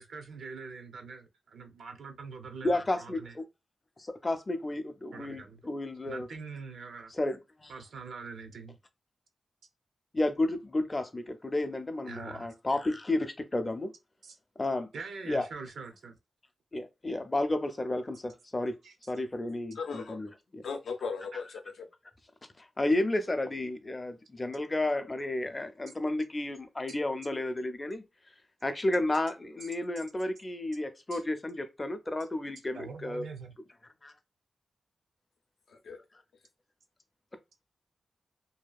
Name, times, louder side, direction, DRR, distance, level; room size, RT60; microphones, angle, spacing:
voice 1, 0.0-3.4 5.1-5.6 6.1-7.1 7.7-8.8 12.1-12.5 14.2-14.4 14.9-16.2 18.8-19.1 29.6-29.7 31.1-31.2 32.2-32.3 32.7-33.5, right 4 dB, 85° right, 0.5 m, -44 dB
voice 2, 2.6-3.4 4.0-6.3 7.1-7.7 10.1-13.9 14.6-14.9 15.3-15.5 16.7-18.8 19.1-20.6 22.6-28.0 28.6-33.2 34.0-34.1, left 2 dB, 25° left, 0.4 m, -32 dB
voice 3, 19.8-20.2 20.6-21.9 35.7-36.0, left 5 dB, 80° left, 0.5 m, -37 dB
2.7 x 2.3 x 2.3 m
wide cardioid pair, 105°, 0 cm